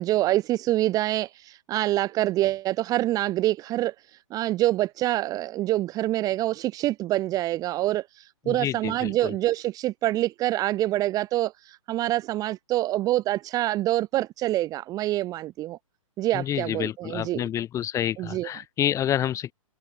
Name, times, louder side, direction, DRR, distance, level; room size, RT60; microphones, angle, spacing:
voice 1, 0.0-3.9 4.3-15.8 16.2-17.4 18.2-18.5, right 15 dB, 20° right, 1.3 m, -26 dB
voice 2, 8.5-9.3 16.3-19.5, left 11 dB, 15° left, 3.0 m, -28 dB
hypercardioid pair, 145°, 18 cm